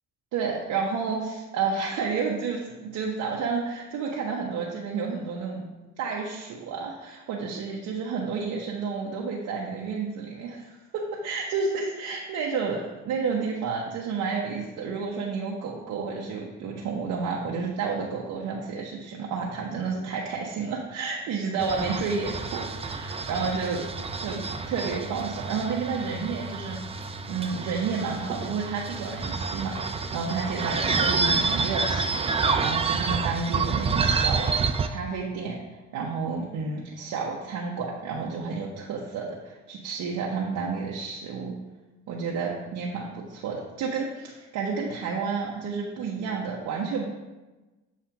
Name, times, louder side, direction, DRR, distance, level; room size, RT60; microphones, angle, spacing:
voice 1, 0.3-5.6 6.0-23.9 24.2-24.4 24.7-34.5 34.9-35.6 35.9-41.5 42.1-47.1, right 5 dB, 80° right, -2 dB, 0.8 m, -31 dB
sound 1, 21.6-34.9, right 4 dB, 20° right, 0.3 m, -28 dB
7.3 x 2.5 x 5.6 m, 1.1 s
cardioid pair, 90°, 30 cm